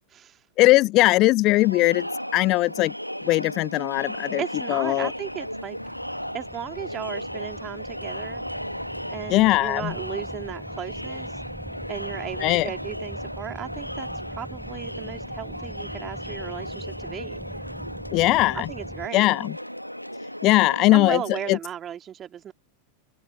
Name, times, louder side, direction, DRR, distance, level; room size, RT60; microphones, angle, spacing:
voice 1, 0.0-0.4 4.4-5.8 6.3-8.4 9.1-11.3 11.9-17.4 18.5-19.3 20.9-22.5, right 9 dB, 25° right, 2.6 m, -36 dB
voice 2, 0.6-2.1 2.3-2.9 3.2-4.4 4.7-5.1 9.3-9.9 12.4-12.7 18.1-18.7 19.1-19.6 20.4-21.2 21.5-21.6, left 19 dB, 40° left, 0.8 m, -20 dB
Crowd, 1.6-21.6, equal, 90° left, 1.5 m, -35 dB
sound 1, 4.7-19.1, right 1 dB, 5° right, 7.3 m, -43 dB
open air
figure-of-eight pair, 90°, 0 cm